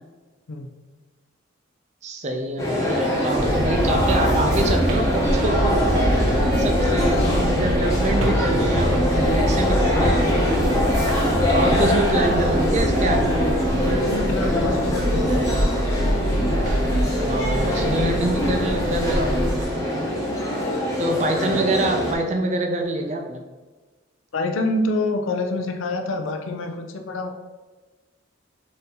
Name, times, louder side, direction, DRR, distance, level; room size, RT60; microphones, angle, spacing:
voice 1, 2.0-5.8 6.3-10.7 11.5-13.4 17.2-19.3 21.0-23.4, right 2 dB, 35° right, 3 dB, 0.4 m, -25 dB
sound 1, 2.6-22.1, left 1 dB, 15° left, 0.8 m, -23 dB
sound 2, 3.3-19.6, right 1 dB, 85° right, 0.7 m, -24 dB
voice 2, 14.1-15.5 20.6-20.9 24.3-27.4, left 2 dB, 80° left, 4 dB, 0.5 m, -27 dB
4.1 x 2.7 x 3.7 m, 1.3 s
head